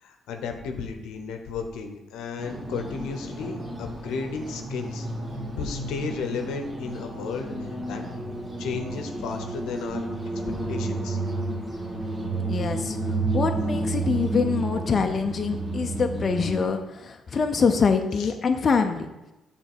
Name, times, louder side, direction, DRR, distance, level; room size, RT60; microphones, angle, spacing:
voice 1, 0.0-5.1 5.6-8.0 8.6-10.1 10.7-11.2 18.2-18.3, left 5 dB, 90° left, 5 dB, 0.8 m, -33 dB
sound 1, 2.4-16.6, right 2 dB, 35° right, 1.7 m, -31 dB
voice 2, 12.4-13.0 13.3-19.1, left 5 dB, 45° left, 5 dB, 0.6 m, -24 dB
7.0 x 3.8 x 6.0 m, 0.98 s
cardioid pair, 90°, 0 cm